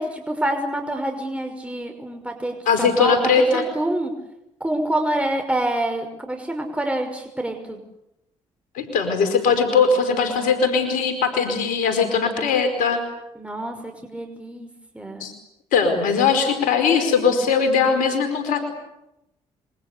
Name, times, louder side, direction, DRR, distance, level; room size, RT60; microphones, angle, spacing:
voice 1, 0.0-2.7 3.0-4.1 4.6-7.8 13.4-14.7 14.9-15.3, right 1 dB, 10° right, 4 dB, 5.7 m, -26 dB
voice 2, 2.7-3.6 8.7-13.0 15.2-15.3 15.7-18.6, left 5 dB, 75° left, 8 dB, 4.9 m, -20 dB
28.0 x 24.0 x 8.3 m, 0.87 s
hypercardioid pair, 45°, 14 cm